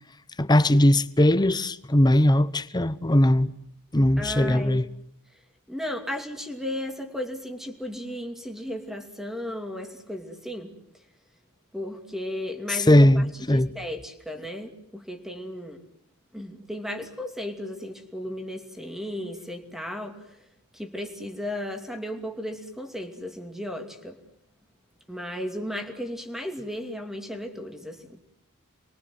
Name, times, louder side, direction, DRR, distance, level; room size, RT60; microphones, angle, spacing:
voice 1, 0.4-3.5 3.9-4.9 12.7-13.7, left 1 dB, 20° left, 0.9 m, -19 dB
voice 2, 4.2-4.8 5.7-10.7 11.7-13.2 13.5-15.8 16.3-20.2 20.7-24.2 25.1-28.2, left 1 dB, ahead, 2.7 m, -35 dB
28.5 x 23.0 x 7.9 m
head